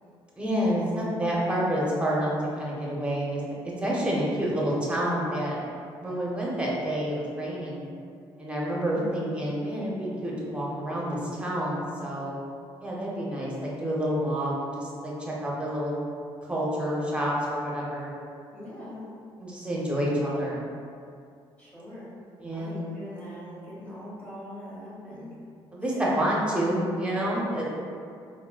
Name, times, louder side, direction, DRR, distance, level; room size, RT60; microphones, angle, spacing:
voice 1, 0.4-5.6 6.0-7.9 8.4-12.4 12.8-16.0 16.5-18.1 19.4-20.6 22.4-22.8 25.7-27.6, equal, 10° right, -5 dB, 0.8 m, -28 dB
voice 2, 8.9-9.3 18.5-19.0 21.6-22.1 22.5-25.3 25.9-26.5, left 1 dB, 15° left, -9 dB, 1.4 m, -41 dB
3.6 x 2.1 x 2.3 m, 2.4 s
cardioid pair, 80°, 10 cm